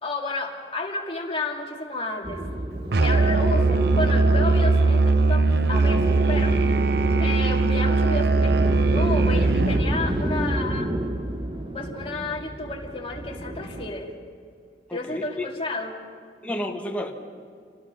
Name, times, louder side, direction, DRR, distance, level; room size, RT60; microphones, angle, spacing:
voice 1, 0.0-2.5 3.0-6.6 7.2-10.9 11.7-14.1 14.9-16.0, left 2 dB, 30° left, 1 dB, 2.2 m, -32 dB
sound 1, 2.2-13.9, right 1 dB, 25° right, 1.1 m, -29 dB
Musical instrument, 2.9-9.9, right 3 dB, 60° right, 0.7 m, -20 dB
voice 2, 14.9-15.4 16.4-17.1, left 1 dB, 10° left, 2 dB, 1.5 m, -31 dB
27.5 x 19.0 x 6.1 m, 2.2 s
head